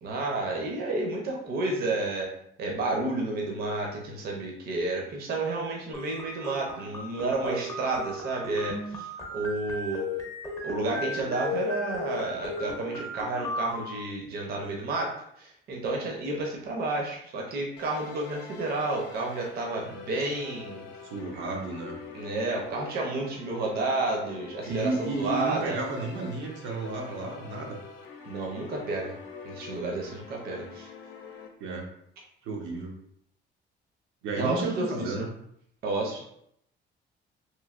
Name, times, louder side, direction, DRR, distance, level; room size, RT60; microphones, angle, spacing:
voice 1, 0.0-2.3 2.6-10.0 10.6-15.1 15.4-20.9 22.1-25.8 28.3-29.1 29.4-30.9 34.4-35.3 35.8-36.2, right 2 dB, 55° right, 0 dB, 0.6 m, -31 dB
sound 1, 5.9-13.9, left 2 dB, 15° left, 0.5 m, -36 dB
sound 2, 17.8-31.5, left 6 dB, 80° left, 0.5 m, -45 dB
voice 2, 21.1-21.9 24.7-27.8 31.6-31.9 32.4-33.0 34.2-35.3, right 3 dB, 90° right, 0 dB, 0.7 m, -32 dB
3.1 x 2.7 x 2.4 m, 0.71 s
cardioid pair, 170°, 20 cm